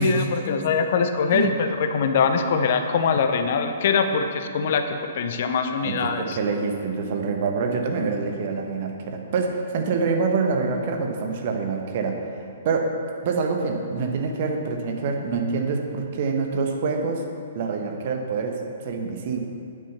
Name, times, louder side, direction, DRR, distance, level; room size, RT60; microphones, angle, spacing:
voice 1, 0.0-6.4, left 5 dB, 50° left, 7 dB, 0.8 m, -23 dB
voice 2, 5.8-12.2 12.6-12.9 13.2-17.2 17.5-19.4, right 4 dB, 45° right, 3 dB, 1.3 m, -26 dB
9.4 x 8.7 x 5.6 m, 2.4 s
figure-of-eight pair, 115°, 0 cm